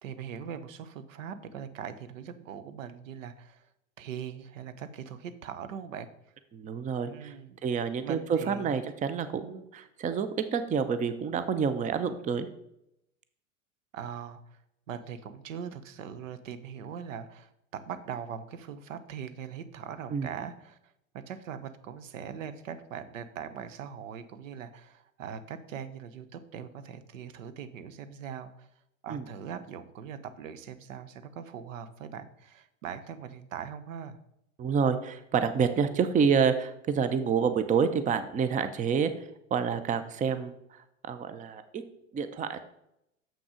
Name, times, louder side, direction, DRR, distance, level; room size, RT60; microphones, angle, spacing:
voice 1, 0.0-3.7 4.0-6.1 7.1-7.6 8.0-8.8 13.9-14.6 14.9-28.7 29.0-34.2, right 8 dB, 70° right, 12 dB, 0.9 m, -41 dB
voice 2, 6.5-7.3 7.6-12.5 20.1-20.3 29.1-29.2 34.6-39.1 39.5-40.5 41.1-41.8 42.1-42.6, right 6 dB, 20° right, 11 dB, 0.6 m, -28 dB
7.2 x 6.0 x 5.0 m, 0.80 s
hypercardioid pair, 95°, 40 cm